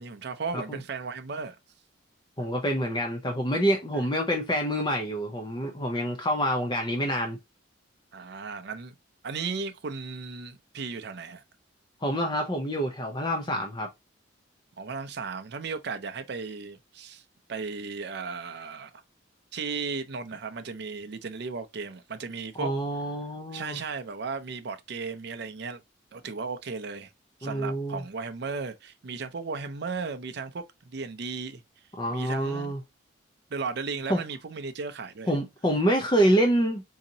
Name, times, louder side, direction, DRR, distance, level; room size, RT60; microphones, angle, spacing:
voice 1, 0.0-1.6 4.0-4.1 8.1-9.0 9.2-11.4 14.8-17.2 17.5-18.9 19.5-22.7 23.5-25.8 26.1-27.1 27.4-31.6 32.1-32.7 33.5-35.3, right 4 dB, 55° right, 0.5 m, -35 dB
voice 2, 2.4-7.4 12.0-13.9 22.6-23.8 27.4-28.0 32.0-32.8 34.1-34.2 35.3-36.8, equal, 20° left, 0.5 m, -27 dB
3.9 x 2.8 x 2.6 m
head